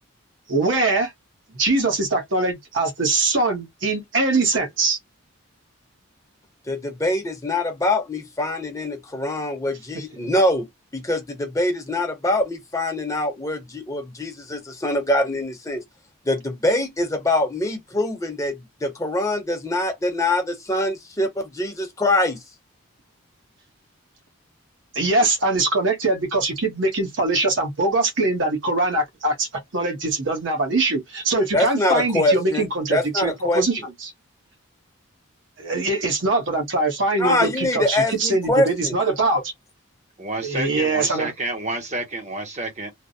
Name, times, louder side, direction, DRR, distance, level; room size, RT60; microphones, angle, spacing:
voice 1, 0.5-1.1 1.5-5.0 24.9-34.1 35.6-39.5 40.4-41.3, right 2 dB, 65° right, 1.1 m, -22 dB
voice 2, 6.7-10.6 10.9-15.8 16.3-22.4 31.5-33.6 37.2-39.0, left 1 dB, 15° left, 0.8 m, -24 dB
voice 3, 40.2-42.9, right 2 dB, 35° right, 0.9 m, -29 dB
3.3 x 2.1 x 2.6 m
head